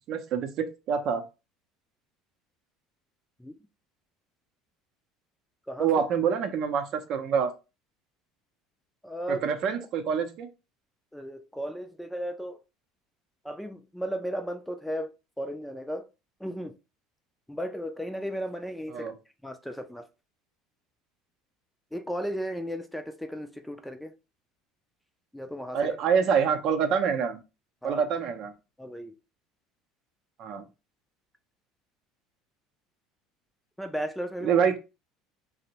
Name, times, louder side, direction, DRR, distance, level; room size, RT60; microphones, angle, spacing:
voice 1, 0.1-1.2 5.8-7.5 9.3-10.5 18.9-19.1 25.7-27.4 27.8-28.5 30.4-30.6 34.4-34.8, right 7 dB, 60° right, 0.5 m, -26 dB
voice 2, 9.0-9.5 11.1-12.6 13.4-16.0 16.4-16.7 17.5-19.1 19.4-20.0 21.9-24.1 25.3-25.8 27.8-28.0 28.8-29.1 33.8-34.6, equal, 5° left, 0.3 m, -35 dB
2.5 x 2.0 x 2.8 m
supercardioid pair, 100°, 0 cm